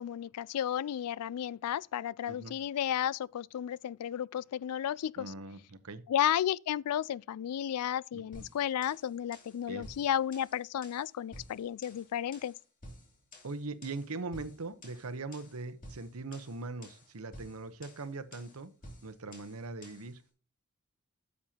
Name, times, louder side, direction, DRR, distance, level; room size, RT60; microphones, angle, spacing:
voice 1, 0.0-5.3 6.1-12.5, left 10 dB, 90° left, 0.3 m, -33 dB
voice 2, 5.2-6.0 8.1-8.2 9.7-9.9 13.4-18.7 19.0-20.2, right 3 dB, 75° right, 0.9 m, -41 dB
sound 1, 8.3-20.2, left 1 dB, 40° left, 2.6 m, -53 dB
9.6 x 7.4 x 2.8 m
head